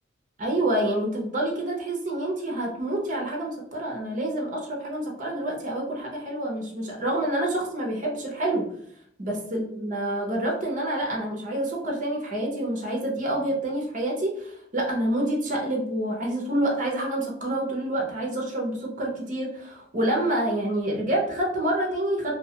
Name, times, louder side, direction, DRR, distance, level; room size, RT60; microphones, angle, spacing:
voice 1, 0.4-8.7 9.2-22.4, right 1 dB, 40° right, -1 dB, 0.7 m, -27 dB
2.7 x 2.2 x 2.8 m, 0.70 s
head